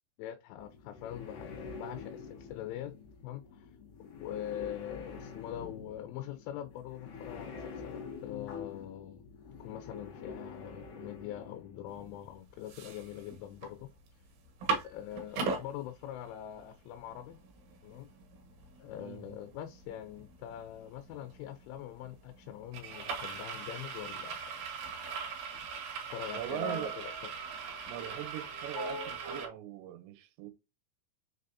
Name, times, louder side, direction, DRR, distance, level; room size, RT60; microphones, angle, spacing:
voice 1, 0.2-3.0 3.2-3.7 4.2-9.2 9.6-13.9 14.8-17.4 17.8-18.1 18.8-24.5 26.1-27.3, left 11 dB, 85° left, 3.2 m, -43 dB
sound 1, 0.6-12.4, left 5 dB, 65° left, 3.9 m, -46 dB
sound 2, 12.0-12.1 12.5-13.7 14.1-14.2 14.4-15.6 16.2-16.3 16.6-29.5, right 5 dB, 60° right, 2.7 m, -39 dB
voice 2, 19.0-19.3 26.3-27.0 27.9-30.5, right 12 dB, 75° right, 2.9 m, -41 dB
6.8 x 5.0 x 2.7 m
omnidirectional pair, 5.5 m